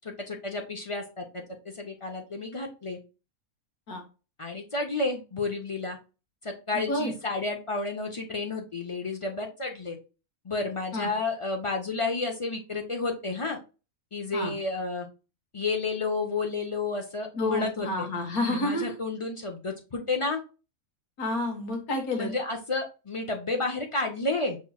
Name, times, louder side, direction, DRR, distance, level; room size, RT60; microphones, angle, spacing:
voice 1, 0.0-3.0 4.4-6.0 6.4-10.0 10.4-13.6 14.1-15.1 15.5-18.1 18.5-20.4 22.2-24.6, left 3 dB, 50° left, 2 dB, 0.3 m, -31 dB
voice 2, 6.7-7.1 10.9-11.1 14.3-14.5 17.3-18.9 21.2-22.3, left 1 dB, 80° left, 3 dB, 1.7 m, -29 dB
6.0 x 3.8 x 2.3 m, 0.32 s
omnidirectional pair, 1.5 m